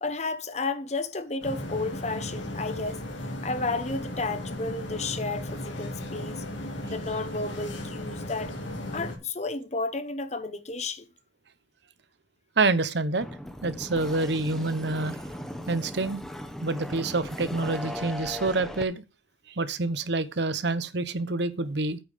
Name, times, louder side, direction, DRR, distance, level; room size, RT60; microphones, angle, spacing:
voice 1, 0.0-3.0 3.4-6.4 6.9-8.5 8.9-11.1, left 3 dB, 35° left, 0.9 m, -32 dB
sound 1, 1.4-9.2, left 1 dB, 85° left, 2.9 m, -36 dB
voice 2, 12.6-13.3 13.6-15.2 15.7-16.2 16.6-19.0 19.5-22.0, right 3 dB, 65° right, 0.9 m, -27 dB
sound 2, 13.2-18.8, equal, ahead, 1.0 m, -38 dB
8.8 x 5.4 x 6.6 m
head